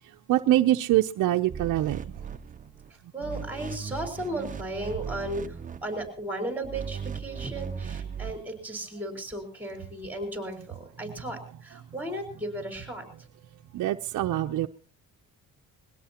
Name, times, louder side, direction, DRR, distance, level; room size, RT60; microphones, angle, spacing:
voice 1, 0.3-2.0 11.1-11.2 13.7-14.7, right 14 dB, 60° right, 4 dB, 0.6 m, -24 dB
sound 1, 1.5-2.9 3.2-6.1 6.6-8.4, right 7 dB, 25° right, 0.7 m, -37 dB
voice 2, 3.1-13.0, right 1 dB, 5° right, 3 dB, 4.4 m, -35 dB
22.5 x 17.0 x 2.9 m, 0.40 s
cardioid pair, 110°, 35 cm